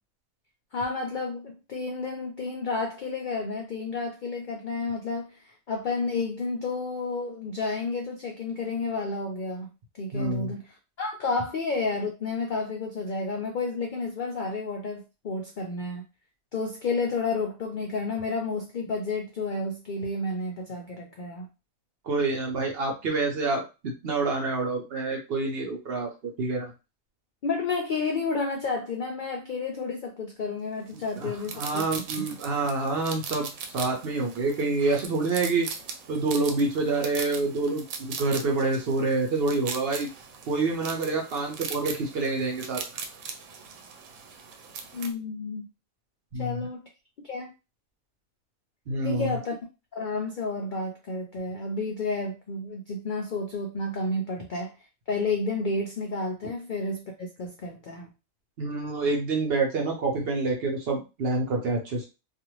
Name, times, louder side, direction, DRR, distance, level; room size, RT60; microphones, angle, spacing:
voice 1, 0.7-5.4 5.7-9.7 10.0-16.0 16.5-21.5 27.4-31.8 32.2-32.3 44.9-45.7 46.4-46.8 47.2-47.5 49.0-49.6 49.9-54.7 55.1-58.1, left 3 dB, 80° left, 2 dB, 0.4 m, -31 dB
voice 2, 10.1-10.5 22.0-26.7 31.2-33.5 33.7-35.7 36.1-40.1 40.5-42.8 46.3-46.6 48.9-49.4 58.6-62.1, right 3 dB, 55° right, 1 dB, 0.8 m, -27 dB
sound 1, 31.0-45.1, right 6 dB, 85° right, 1.0 m, -40 dB
2.5 x 2.4 x 3.0 m, 0.28 s
omnidirectional pair, 1.4 m